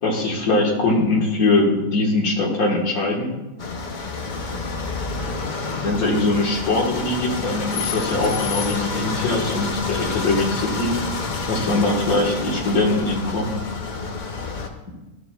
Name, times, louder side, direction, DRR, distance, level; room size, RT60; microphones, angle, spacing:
voice 1, 0.0-3.3 5.8-10.9 11.5-13.5, left 2 dB, 75° left, -1 dB, 1.9 m, -21 dB
sound 1, 3.6-14.7, left 4 dB, 50° left, 0.6 m, -28 dB
13.0 x 6.7 x 2.3 m, 1.1 s
omnidirectional pair, 1.6 m